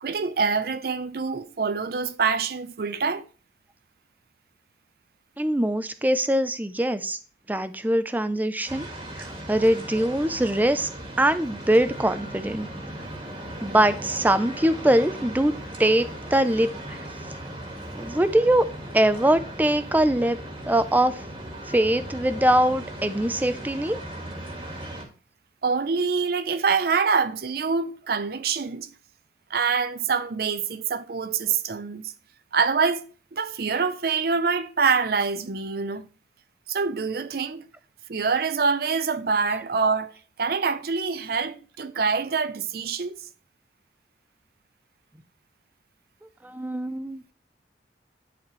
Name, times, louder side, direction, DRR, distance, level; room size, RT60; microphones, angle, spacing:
voice 1, 0.0-3.2 25.6-28.9 29.5-32.1 32.5-33.1 33.3-36.0 36.7-37.7 38.1-40.1 40.4-43.1, right 5 dB, 55° right, 0.6 m, -25 dB
voice 2, 5.4-7.2 7.5-8.9 9.2-10.9 11.2-12.7 13.6-15.5 15.8-17.0 17.9-18.6 18.9-20.4 20.7-21.2 21.7-24.0 46.4-47.2, right 1 dB, 10° right, 0.4 m, -22 dB
sound 1, 8.7-25.0, right 1 dB, 30° right, 1.6 m, -38 dB
10.5 x 4.3 x 3.1 m
head